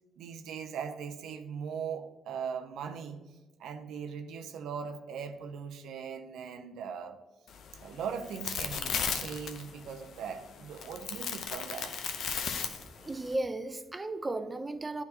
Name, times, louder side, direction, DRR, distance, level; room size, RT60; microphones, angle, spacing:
voice 1, 0.2-3.2 3.6-7.2 7.8-11.9, right 7 dB, 80° right, 7 dB, 0.5 m, -39 dB
sound 1, 7.5-13.3, left 6 dB, 70° left, 0.6 m, -36 dB
voice 2, 13.0-15.0, right 2 dB, 25° right, 10 dB, 0.5 m, -35 dB
9.2 x 4.0 x 2.8 m, 1.2 s
supercardioid pair, 65°, 0 cm